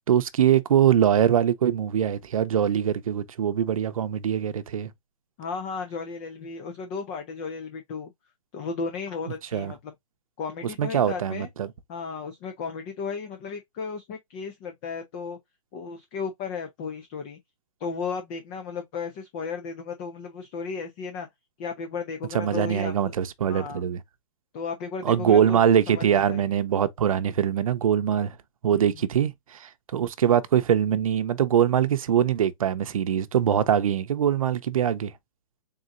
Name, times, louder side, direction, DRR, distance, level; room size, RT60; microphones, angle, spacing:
voice 1, 0.1-4.9 9.5-9.7 10.8-11.7 22.3-24.0 25.0-28.3 28.6-35.1, right 9 dB, 90° right, 0.6 m, -23 dB
voice 2, 5.4-8.1 8.5-9.9 10.4-11.5 11.9-15.4 15.7-17.4 17.8-21.3 21.6-23.1 23.4-23.8 24.5-26.4 28.7-29.0, left 5 dB, 20° left, 0.3 m, -34 dB
4.0 x 3.7 x 2.5 m
hypercardioid pair, 165°, 17 cm